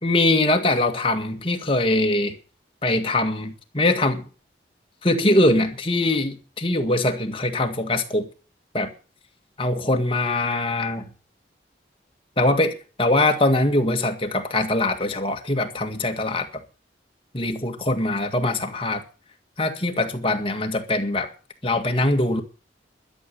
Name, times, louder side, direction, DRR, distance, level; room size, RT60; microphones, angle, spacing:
voice 1, 0.0-2.3 2.8-4.3 5.0-8.3 8.7-8.9 9.6-11.0 12.4-16.6 17.3-19.0 19.6-21.3 21.6-22.4, left 2 dB, 30° left, 1.9 m, -22 dB
12.5 x 7.0 x 10.0 m
head